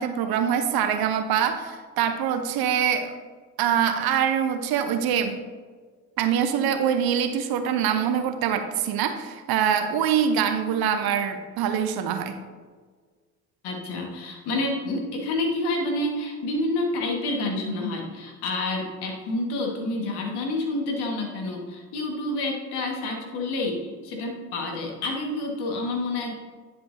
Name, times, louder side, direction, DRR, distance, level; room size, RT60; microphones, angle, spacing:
voice 1, 0.0-3.1 3.6-5.4 6.2-12.3, right 8 dB, 55° right, 8 dB, 0.9 m, -24 dB
voice 2, 13.6-26.3, left 2 dB, 65° left, 0 dB, 1.8 m, -28 dB
10.0 x 7.7 x 2.7 m, 1.5 s
hypercardioid pair, 50°, 43 cm